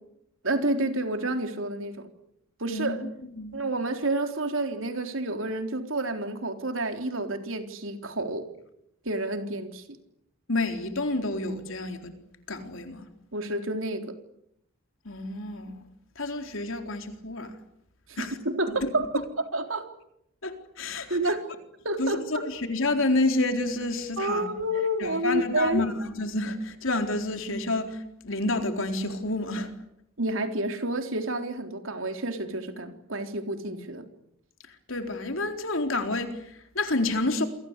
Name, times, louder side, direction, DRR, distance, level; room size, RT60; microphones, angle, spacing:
voice 1, 0.4-2.1 2.6-3.0 3.5-8.5 9.1-9.8 13.3-14.2 18.1-19.9 21.1-21.5 21.8-22.4 24.2-25.8 30.2-34.1, right 1 dB, 70° right, 3.8 m, -29 dB
voice 2, 10.5-12.1 12.5-13.1 15.0-15.9 16.2-17.5 18.2-18.4 18.8-18.9 20.4-21.2 22.0-24.5 25.0-29.7 34.9-37.4, left 2 dB, 70° left, 4.1 m, -29 dB
28.5 x 23.5 x 8.3 m
head